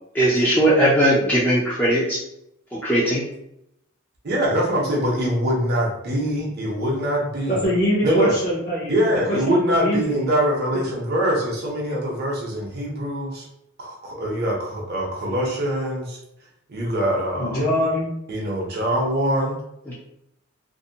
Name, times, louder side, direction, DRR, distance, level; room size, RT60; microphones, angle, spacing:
voice 1, 0.1-2.2 2.7-3.2 19.9-20.0, right 1 dB, 10° left, -7 dB, 0.4 m, -19 dB
voice 2, 4.2-7.7 8.0-8.3 8.9-13.4 13.8-16.2 16.7-17.6 18.3-19.6, equal, 50° right, -3 dB, 0.7 m, -23 dB
voice 3, 7.5-10.3 17.4-18.1, equal, 50° left, -8 dB, 0.8 m, -23 dB
2.6 x 2.1 x 2.7 m, 0.81 s
head